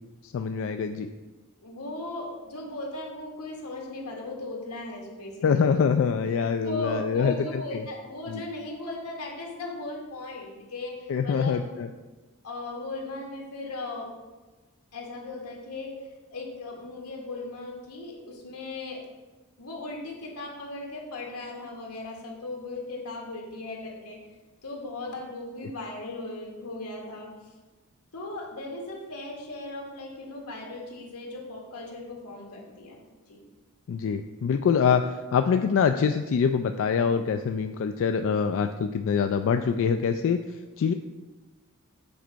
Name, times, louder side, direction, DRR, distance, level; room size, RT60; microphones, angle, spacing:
voice 1, 0.2-1.1 5.4-7.4 7.7-7.8 8.3-8.4 11.1-11.9 33.9-40.4 40.8-40.9, left 6 dB, 60° left, 7 dB, 0.3 m, -24 dB
voice 2, 1.6-5.8 6.6-11.7 12.4-14.1 14.9-19.0 19.6-24.2 24.6-27.5 28.1-33.0 33.3-33.4, left 2 dB, 90° left, 0 dB, 1.7 m, -37 dB
7.8 x 4.5 x 5.1 m, 1.2 s
head